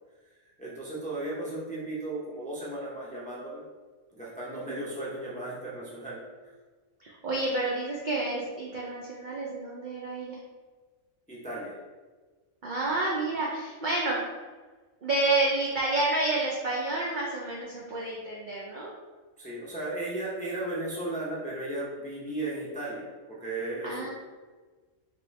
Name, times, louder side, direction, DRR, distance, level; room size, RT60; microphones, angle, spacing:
voice 1, 0.6-3.6 4.1-6.5 7.3-7.4 11.3-11.7 19.4-24.1, right 2 dB, 10° left, -7 dB, 0.5 m, -35 dB
voice 2, 7.0-10.4 12.6-14.2 15.0-18.9 23.8-24.1, right 2 dB, 60° right, -4 dB, 0.5 m, -29 dB
3.1 x 3.0 x 3.1 m, 1.3 s
omnidirectional pair, 1.4 m